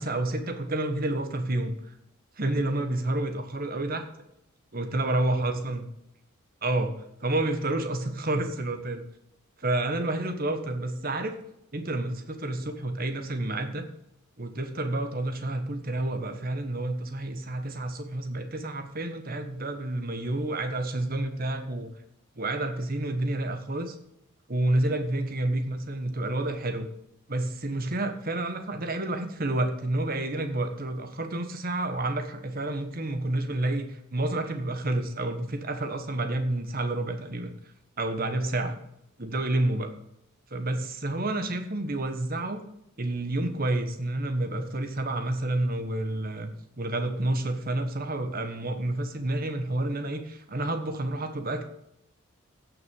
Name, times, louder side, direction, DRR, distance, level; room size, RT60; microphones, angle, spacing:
voice 1, 0.0-1.7 2.4-4.1 4.7-5.8 6.6-6.9 7.2-9.0 9.6-11.4 11.7-13.8 14.4-21.9 22.4-24.0 24.5-26.9 27.3-37.5 38.0-38.8 39.2-39.9 40.5-42.6 43.0-46.5 46.8-51.6, right 1 dB, 40° right, 7 dB, 1.3 m, -29 dB
16.5 x 6.1 x 5.4 m, 0.80 s
head